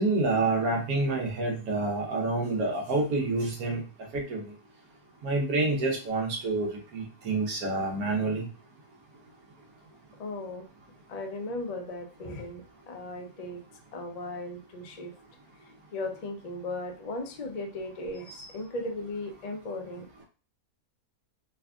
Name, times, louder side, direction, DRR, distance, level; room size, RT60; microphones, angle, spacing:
voice 1, 0.0-3.8 4.1-4.5 5.2-8.5 18.4-18.5, right 3 dB, 85° right, 0 dB, 1.4 m, -28 dB
voice 2, 10.2-10.7 11.1-13.6 13.9-15.1 15.6-20.1, left 2 dB, 60° left, 4 dB, 0.4 m, -37 dB
3.3 x 2.4 x 3.4 m, 0.35 s
omnidirectional pair, 1.5 m